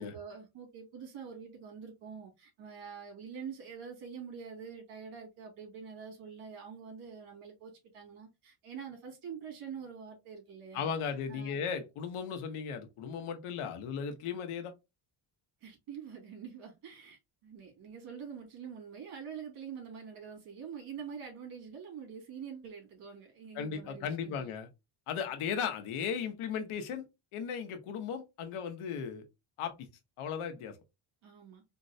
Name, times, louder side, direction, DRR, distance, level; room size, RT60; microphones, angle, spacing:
voice 1, 0.0-10.9 11.3-11.6 15.6-24.5 31.2-31.6, right 7 dB, 85° right, 2.3 m, -46 dB
voice 2, 10.7-14.7 23.5-24.7 25.1-27.0 27.3-29.2 29.6-29.7 30.2-30.8, left 7 dB, 80° left, 1.0 m, -36 dB
4.4 x 2.1 x 2.6 m
cardioid pair, 135°, 49 cm